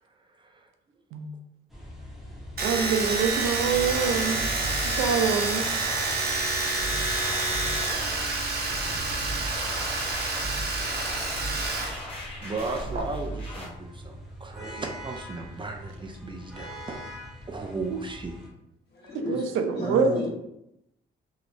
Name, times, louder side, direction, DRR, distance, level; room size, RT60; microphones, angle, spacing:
voice 1, 0.4-0.7 10.3-10.4 12.0-17.2 17.5-18.4, right 3 dB, 25° right, 3 dB, 0.4 m, -36 dB
sound 1, 1.7-18.5, equal, ahead, 0.9 m, -42 dB
Domestic sounds home sounds, 2.6-11.9 12.2-13.0, right 3 dB, 50° right, 0.8 m, -28 dB
voice 2, 2.6-4.4 4.9-5.6 17.9-18.0 19.1-20.1, right 6 dB, 85° right, 6 dB, 0.5 m, -25 dB
sound 2, 3.7-13.7, right 1 dB, 30° left, 1.3 m, -37 dB
voice 3, 5.8-6.4 18.9-20.3, left 1 dB, 55° left, -4 dB, 1.2 m, -34 dB
3.0 x 2.8 x 2.6 m, 0.82 s
cardioid pair, 90°, 20 cm